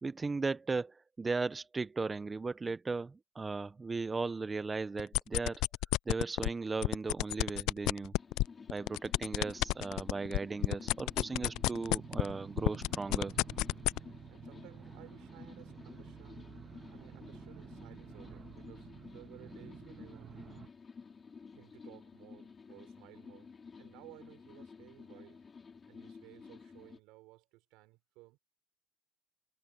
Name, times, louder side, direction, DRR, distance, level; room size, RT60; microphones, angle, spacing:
voice 1, 0.0-5.6 6.1-8.1 8.7-13.3, right 4 dB, 20° right, 0.6 m, -36 dB
sound 1, 5.0-6.5 6.8-12.3 12.6-14.0, left 19 dB, 75° left, 0.3 m, -30 dB
sound 2, 8.2-27.0, left 5 dB, 30° left, 3.6 m, -53 dB
sound 3, 9.5-20.7, right 8 dB, 40° right, 1.6 m, -52 dB
voice 2, 13.9-16.5 16.9-20.7 21.5-25.5 25.9-28.4, right 20 dB, 80° right, 4.3 m, -58 dB
supercardioid pair, 100°, 0 cm